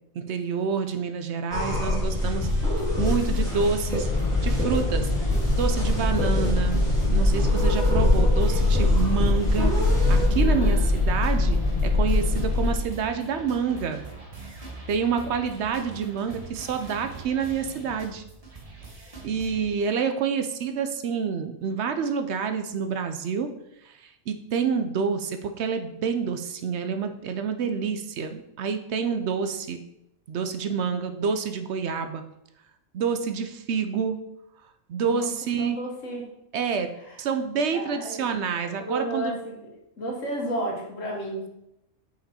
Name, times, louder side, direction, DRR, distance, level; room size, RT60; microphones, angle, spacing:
voice 1, 0.1-2.5 3.0-4.1 4.4-5.1 5.5-9.7 10.1-11.6 11.8-14.0 14.9-18.2 19.2-23.5 23.8-29.8 30.3-32.2 32.9-34.2 34.9-35.8 36.5-36.9 37.2-39.4, right 6 dB, 65° right, 8 dB, 0.8 m, -28 dB
sound 1, 1.5-10.3, left 2 dB, ahead, 2.4 m, -25 dB
sound 2, 2.4-19.6, right 3 dB, 30° right, 1.1 m, -42 dB
sound 3, 4.1-12.8, left 2 dB, 40° left, 0.4 m, -24 dB
voice 2, 10.3-10.9 35.0-35.3 35.6-36.3 37.7-38.3 38.7-41.4, right 1 dB, 75° left, 0 dB, 1.8 m, -32 dB
6.0 x 5.1 x 4.2 m, 0.84 s
omnidirectional pair, 1.3 m